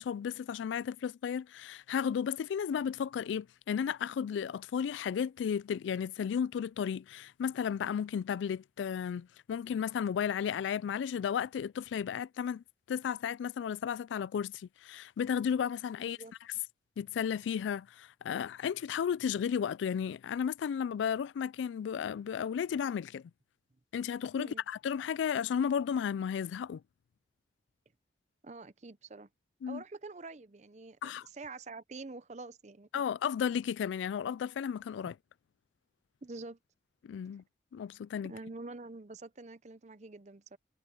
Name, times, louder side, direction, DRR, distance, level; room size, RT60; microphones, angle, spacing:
voice 1, 0.0-16.2 17.0-23.2 23.9-26.8 29.6-29.8 31.0-31.2 32.9-35.1 37.0-37.4 37.7-38.3, left 7 dB, 85° left, 0.3 m, -34 dB
voice 2, 16.0-16.3 24.4-24.6 28.4-29.3 29.7-32.9 36.2-36.6 38.2-40.6, right 3 dB, 40° right, 0.7 m, -46 dB
head